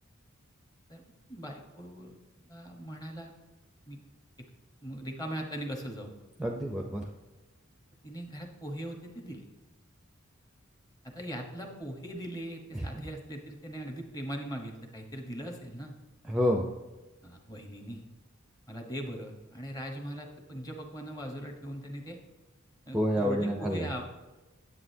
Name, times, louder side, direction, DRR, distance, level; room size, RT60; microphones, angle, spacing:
voice 1, 1.3-3.3 3.9-4.0 4.4-4.5 4.8-6.1 8.0-9.4 11.0-15.9 17.2-18.0 18.7-22.2 22.9-24.0, equal, 20° left, 2 dB, 1.1 m, -40 dB
voice 2, 6.4-7.0 12.7-12.8 16.2-16.7 22.9-23.9, equal, 5° right, 1 dB, 0.6 m, -28 dB
9.7 x 8.2 x 2.7 m, 1.1 s
head